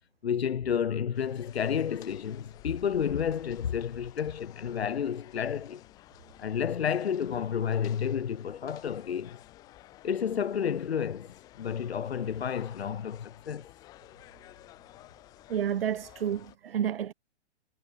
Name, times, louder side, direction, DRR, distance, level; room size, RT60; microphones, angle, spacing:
voice 1, 0.2-5.8 6.4-9.4 10.0-13.7, left 8 dB, 60° left, 2.2 m, -31 dB
sound 1, 1.1-16.6, left 16 dB, 10° left, 1.9 m, -53 dB
voice 2, 15.5-17.1, right 9 dB, 55° right, 0.7 m, -30 dB
hypercardioid pair, 180°, 36 cm